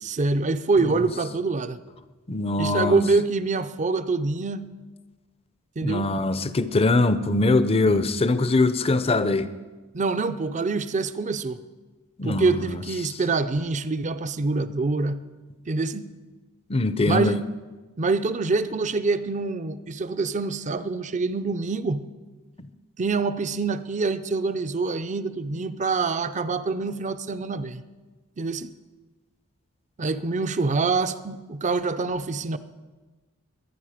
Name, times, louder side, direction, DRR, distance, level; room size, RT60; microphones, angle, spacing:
voice 1, 0.0-1.8 2.6-4.6 5.8-6.1 9.9-11.6 12.2-15.2 15.7-16.1 17.0-17.4 18.0-22.0 23.0-27.8 28.4-28.7 30.0-32.6, right 3 dB, 35° right, 0.6 m, -25 dB
voice 2, 2.3-3.0 5.8-9.5 12.2-12.6 16.7-17.4, left 2 dB, 25° left, 0.6 m, -22 dB
22.0 x 9.5 x 5.0 m
head